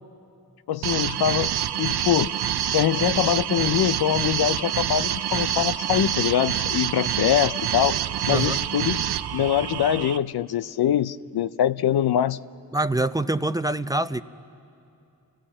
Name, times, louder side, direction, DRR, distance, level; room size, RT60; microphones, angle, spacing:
voice 1, 0.7-1.5 1.8-2.3 2.7-7.9 8.3-9.0 9.3-12.4, left 10 dB, 80° left, 15 dB, 0.5 m, -23 dB
sound 1, 0.8-10.2, right 10 dB, 85° right, 0.5 m, -26 dB
voice 2, 8.3-8.6 12.7-14.2, right 2 dB, 10° right, 12 dB, 0.5 m, -25 dB
29.0 x 15.0 x 8.5 m, 2.6 s
cardioid pair, 50°, 38 cm